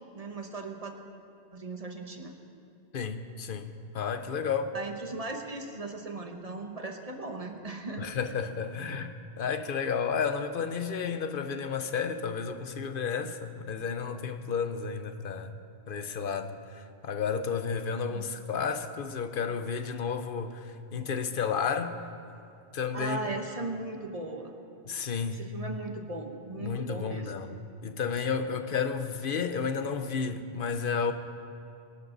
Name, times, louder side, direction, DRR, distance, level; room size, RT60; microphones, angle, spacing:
voice 1, 0.1-1.0 1.5-2.3 4.7-8.1 18.1-18.3 22.9-24.6 25.3-27.3, right 3 dB, 35° right, 3 dB, 1.4 m, -38 dB
voice 2, 2.9-4.7 8.0-22.0 22.7-23.4 24.9-25.4 26.6-27.5 27.8-31.1, left 6 dB, 60° left, 9 dB, 1.0 m, -32 dB
24.0 x 12.0 x 4.0 m, 2.7 s
omnidirectional pair, 1.1 m